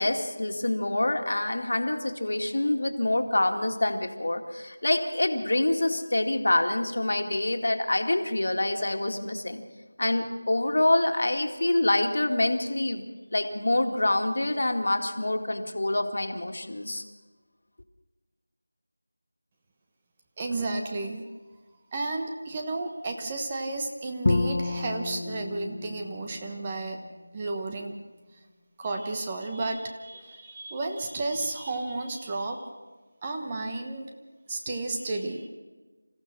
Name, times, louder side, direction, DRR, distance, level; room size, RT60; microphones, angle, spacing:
voice 1, 0.0-9.6 10.0-17.0, left 1 dB, 60° left, 4 dB, 2.2 m, -26 dB
voice 2, 20.4-21.2 21.9-27.0 27.3-27.9 28.8-32.6 33.2-34.1 34.5-35.5, right 2 dB, 20° right, 3 dB, 1.2 m, -32 dB
Bowed string instrument, 24.3-27.4, left 2 dB, 40° left, 1.2 m, -30 dB
27.5 x 15.0 x 6.2 m, 1.3 s
figure-of-eight pair, 175°, 0 cm